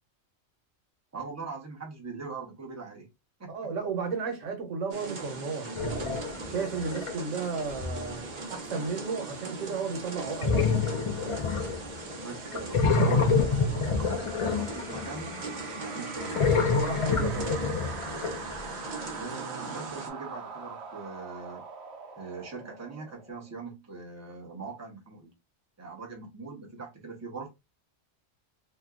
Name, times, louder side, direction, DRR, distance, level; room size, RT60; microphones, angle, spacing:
voice 1, 1.1-3.1 3.4-3.5 12.0-15.3 15.8-16.6 19.1-21.6 22.2-25.3 25.8-27.5, right 4 dB, 15° right, 0.8 m, -41 dB
voice 2, 3.5-6.2 6.5-8.2 8.5-10.7 16.9-17.6, right 5 dB, 85° right, 1.2 m, -34 dB
sound 1, 4.9-20.1, right 3 dB, 45° right, 0.8 m, -40 dB
sound 2, 5.8-7.1 7.7-8.1 10.4-12.1 12.5-15.4 16.2-18.7, left 4 dB, 60° left, 0.3 m, -27 dB
sound 3, 13.8-23.5, right 5 dB, 65° right, 1.0 m, -43 dB
2.9 x 2.2 x 3.6 m
omnidirectional pair, 1.3 m